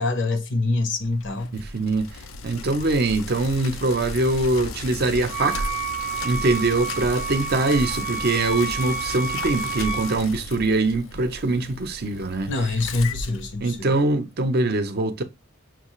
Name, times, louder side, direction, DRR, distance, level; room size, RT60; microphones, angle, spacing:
voice 1, 0.0-1.6 12.5-13.9, left 2 dB, 65° left, 0.9 m, -25 dB
Bicycle, 1.0-14.2, left 3 dB, 85° left, 0.6 m, -35 dB
voice 2, 1.5-2.1 2.4-5.7 6.2-12.5 13.6-15.2, right 2 dB, 55° right, 0.7 m, -23 dB
Wind instrument woodwind instrument, 5.3-10.2, right 6 dB, 10° right, 0.5 m, -30 dB
6.0 x 2.4 x 3.0 m
head